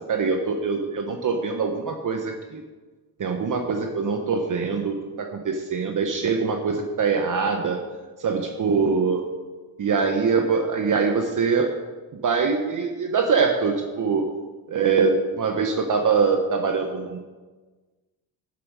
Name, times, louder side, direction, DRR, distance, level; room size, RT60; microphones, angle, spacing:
voice 1, 0.1-2.6 3.2-7.8 8.2-9.3 9.8-11.7 12.2-14.2 14.7-17.2, right 5 dB, 40° right, 3 dB, 1.1 m, -23 dB
11.0 x 7.3 x 4.8 m, 1.3 s
cardioid pair, 90°, 46 cm